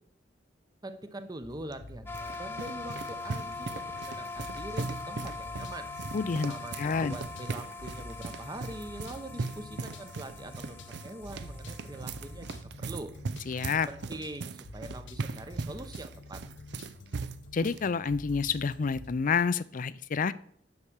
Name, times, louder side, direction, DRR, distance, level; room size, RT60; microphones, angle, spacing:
voice 1, 0.8-5.9 6.5-12.5 12.8-13.1 13.7-16.4, right 1 dB, 20° right, 9 dB, 0.8 m, -43 dB
sound 1, 1.4-19.1, left 2 dB, 80° left, 0.8 m, -48 dB
sound 2, 1.7-17.8, right 4 dB, 65° right, 0.5 m, -39 dB
sound 3, 2.1-12.6, left 3 dB, 10° left, 0.7 m, -42 dB
voice 2, 6.1-7.2 13.5-13.9 17.5-20.3, left 5 dB, 45° left, 17 dB, 0.4 m, -29 dB
9.7 x 4.8 x 7.2 m, 0.63 s
head